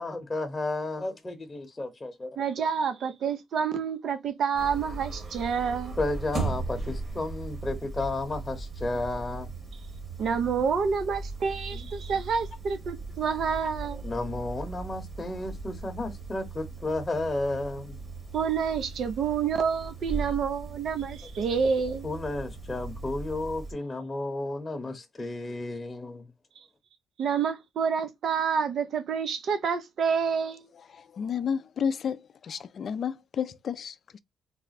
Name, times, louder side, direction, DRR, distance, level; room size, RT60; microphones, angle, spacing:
voice 1, 0.0-2.4 6.0-9.5 11.7-12.1 13.9-18.0 22.0-26.3, left 2 dB, 20° left, 0.9 m, -33 dB
voice 2, 2.4-6.0 10.2-14.0 18.3-22.1 26.6-26.7 27.2-30.6, right 6 dB, 60° right, 0.8 m, -28 dB
sound 1, 4.5-23.7, right 3 dB, 40° right, 1.5 m, -38 dB
voice 3, 30.9-34.2, left 7 dB, 55° left, 0.4 m, -32 dB
4.1 x 2.1 x 4.0 m
cardioid pair, 90°, 0 cm